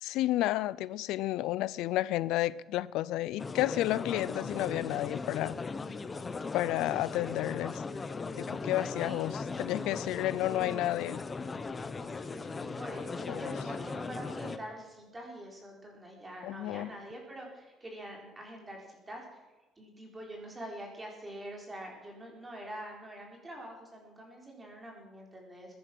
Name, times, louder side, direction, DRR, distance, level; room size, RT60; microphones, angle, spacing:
voice 1, 0.0-5.6 6.5-7.8 8.4-11.2 13.3-13.5 16.4-16.9, left 15 dB, 85° left, 0.5 m, -31 dB
sound 1, 3.4-14.6, left 4 dB, 20° left, 0.7 m, -38 dB
voice 2, 10.5-10.8 12.0-19.4 19.8-25.8, right 1 dB, 15° right, 4.1 m, -45 dB
21.5 x 10.5 x 6.1 m
cardioid pair, 170°, 0 cm